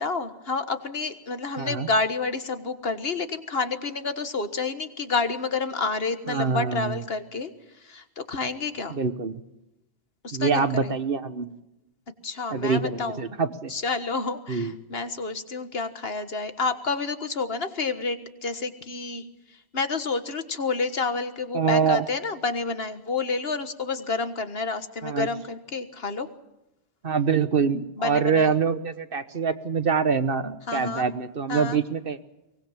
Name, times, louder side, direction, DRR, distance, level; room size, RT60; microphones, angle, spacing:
voice 1, 0.0-7.5 7.8-9.0 10.2-10.9 12.2-13.2 13.7-19.2 19.7-26.3 28.0-28.5 30.7-31.1 31.5-31.8, left 4 dB, 65° left, 10 dB, 1.8 m, -29 dB
voice 2, 1.6-1.9 6.3-7.0 8.9-9.3 10.3-11.6 12.5-13.7 14.5-14.7 21.5-22.0 25.0-25.3 27.0-32.2, right 5 dB, 60° right, 11 dB, 1.4 m, -25 dB
23.5 x 19.5 x 7.4 m, 0.92 s
omnidirectional pair, 1.1 m